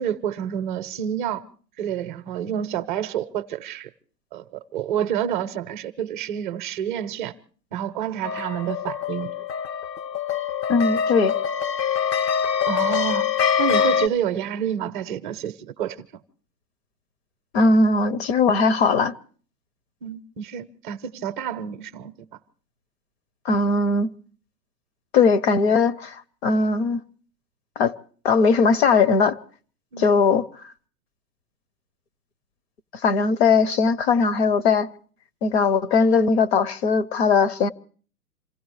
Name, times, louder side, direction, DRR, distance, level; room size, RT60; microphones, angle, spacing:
voice 1, 0.0-1.4 1.8-3.9 4.3-4.4 4.7-7.3 7.7-9.3 12.6-13.3 13.6-16.0 20.0-22.1 29.9-30.1, right 9 dB, 30° right, 0.6 m, -28 dB
sound 1, 8.2-14.1, left 8 dB, 85° left, 1.0 m, -24 dB
voice 2, 10.7-11.3 17.5-19.1 23.4-24.1 25.1-27.0 27.8-27.9 28.2-29.4 30.0-30.4 33.0-34.9 35.4-37.7, left 4 dB, 40° left, 0.6 m, -19 dB
27.0 x 15.5 x 3.2 m
hypercardioid pair, 130°, 49 cm